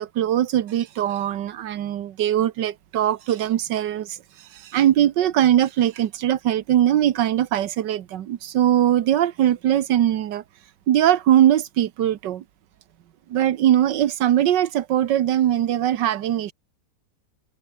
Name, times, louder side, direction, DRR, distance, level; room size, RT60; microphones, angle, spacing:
voice 1, 0.0-4.2 4.5-10.4 10.9-12.4 13.3-16.5, right 11 dB, 85° right, 1.6 m, -21 dB
omnidirectional pair, 1.9 m